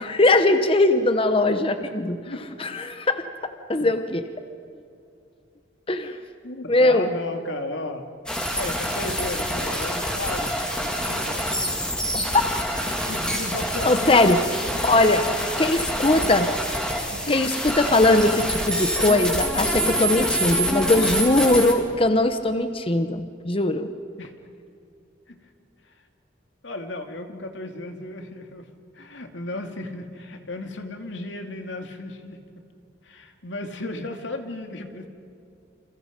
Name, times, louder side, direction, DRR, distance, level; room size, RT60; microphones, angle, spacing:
voice 1, 0.0-2.2 2.6-4.2 5.9-6.2 6.7-7.1 13.8-14.4 14.8-15.2 15.6-16.5 17.3-23.9, left 2 dB, 30° left, 9 dB, 1.0 m, -20 dB
voice 2, 6.4-8.1 8.6-10.5 10.8-11.4 12.8-16.5 17.1-17.4 24.2-24.3 25.3-25.4 25.9-26.0 26.6-28.7 28.9-32.4 33.0-35.1, left 2 dB, 90° left, 4 dB, 2.5 m, -35 dB
sound 1, 8.3-21.7, equal, 5° left, 3.3 m, -26 dB
29.5 x 28.0 x 5.2 m, 2.6 s
head